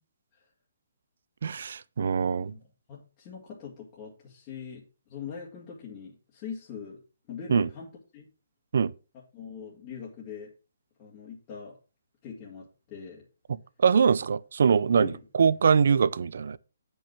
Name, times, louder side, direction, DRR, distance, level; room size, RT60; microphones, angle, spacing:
voice 1, 1.4-2.5 7.5-7.7 8.7-8.9 13.8-16.6, right 6 dB, 65° right, 0.6 m, -23 dB
voice 2, 2.0-2.6 2.9-7.0 7.3-8.3 9.1-10.5 11.0-11.8 12.2-13.2 14.9-15.2, left 6 dB, 25° left, 2.4 m, -42 dB
8.8 x 5.5 x 6.0 m
hypercardioid pair, 155°, 0 cm